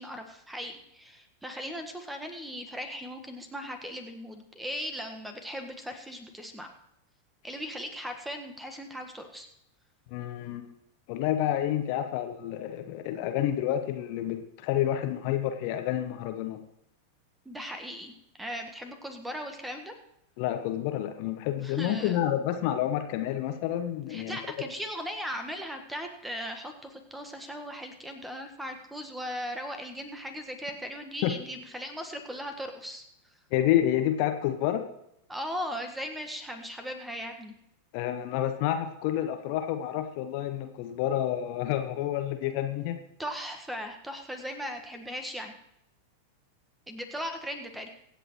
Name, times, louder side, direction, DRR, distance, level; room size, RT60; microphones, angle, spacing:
voice 1, 0.0-6.7 7.4-9.5 17.4-19.9 21.6-22.2 24.1-33.0 35.3-37.5 43.2-45.5 46.9-47.9, equal, 5° right, 6 dB, 1.5 m, -38 dB
voice 2, 10.1-10.7 11.1-16.7 20.4-24.4 31.2-31.3 33.5-34.9 37.9-43.0, left 12 dB, 45° left, 7 dB, 1.0 m, -29 dB
24.5 x 8.2 x 3.1 m, 0.80 s
figure-of-eight pair, 90°, 0 cm